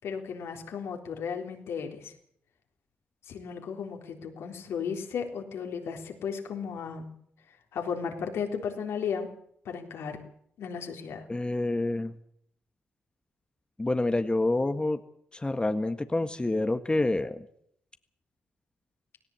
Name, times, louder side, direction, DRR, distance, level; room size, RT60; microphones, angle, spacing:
voice 1, 0.0-2.1 3.3-7.1 7.7-9.3 9.7-10.2 10.6-11.2, left 6 dB, 75° left, 3 dB, 3.8 m, -35 dB
voice 2, 11.3-12.1 13.8-15.0 15.3-17.4, left 2 dB, 20° left, 9 dB, 1.6 m, -27 dB
18.0 x 18.0 x 8.5 m, 0.69 s
supercardioid pair, 45°, 4 cm